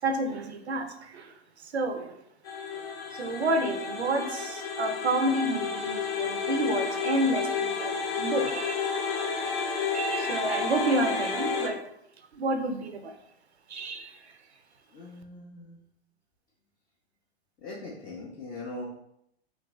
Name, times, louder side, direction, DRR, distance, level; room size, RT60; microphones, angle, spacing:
voice 1, 0.0-2.2 2.7-8.8 9.9-11.8 12.3-13.1 13.7-14.4, right 2 dB, 85° right, 6 dB, 0.5 m, -30 dB
sound 1, 2.4-11.7, left 5 dB, 65° left, 0.7 m, -31 dB
voice 2, 14.9-15.8 17.6-18.8, left 2 dB, 10° left, -7 dB, 0.3 m, -41 dB
3.0 x 2.6 x 3.0 m, 0.76 s
figure-of-eight pair, 105°, 32 cm